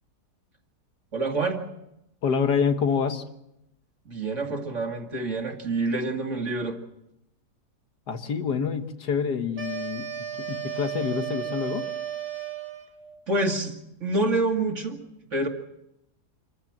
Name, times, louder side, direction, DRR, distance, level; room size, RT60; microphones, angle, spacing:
voice 1, 1.1-1.6 4.1-6.8 13.3-13.8 14.0-15.0 15.3-15.5, right 2 dB, 45° right, 3 dB, 2.5 m, -27 dB
voice 2, 2.2-3.2 8.1-10.1 10.4-11.9, left 6 dB, 80° left, 7 dB, 2.0 m, -26 dB
sound 1, 9.6-13.1, right 10 dB, 70° right, 2.6 m, -34 dB
26.5 x 14.5 x 7.4 m, 0.84 s
omnidirectional pair, 1.7 m